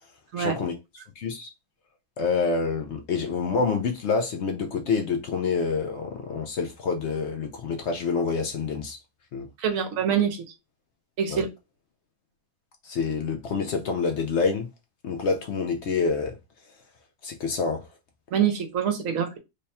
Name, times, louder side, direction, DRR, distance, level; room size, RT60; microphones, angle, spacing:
voice 1, 0.4-0.7 1.2-1.5 2.2-9.0 9.3-9.5 11.3-11.4 12.8-14.7 15.0-16.4 17.2-17.9, left 4 dB, 65° left, 0.8 m, -27 dB
voice 2, 9.6-10.4 11.2-11.5 18.3-19.4, right 8 dB, 70° right, 1.1 m, -25 dB
3.3 x 2.2 x 4.0 m
omnidirectional pair, 1.5 m